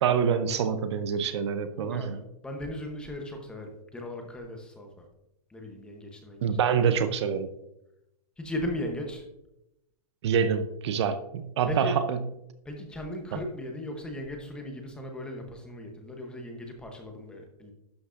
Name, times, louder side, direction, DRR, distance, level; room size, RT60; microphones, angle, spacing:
voice 1, 0.0-2.2 6.4-7.5 10.2-12.2 13.3-13.4, right 7 dB, 45° right, 10 dB, 0.5 m, -26 dB
voice 2, 1.8-5.1 5.5-6.9 8.4-9.2 11.7-12.0 12.6-17.7, left 1 dB, 5° left, 3 dB, 0.8 m, -37 dB
11.5 x 6.0 x 2.5 m, 0.84 s
hypercardioid pair, 165°, 20 cm